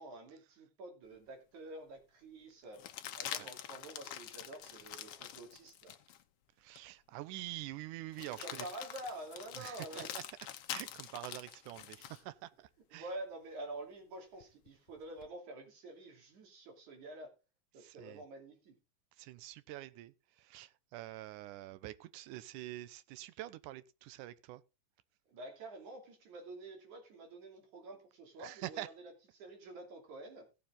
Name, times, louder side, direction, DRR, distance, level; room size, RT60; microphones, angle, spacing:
voice 1, 0.0-2.8 3.2-5.9 8.3-10.1 12.9-17.3 17.7-18.8 25.3-30.5, right 2 dB, 60° right, 4.0 m, -48 dB
sound 1, 1.2-1.3 2.7-6.2 6.8-6.9 8.1-12.2 14.4-15.3, left 11 dB, 75° left, 1.4 m, -46 dB
voice 2, 6.6-8.7 9.6-10.2 10.7-13.1 17.8-18.2 19.2-24.6 28.4-28.9, right 15 dB, 80° right, 2.2 m, -46 dB
16.5 x 7.2 x 3.7 m
omnidirectional pair, 3.9 m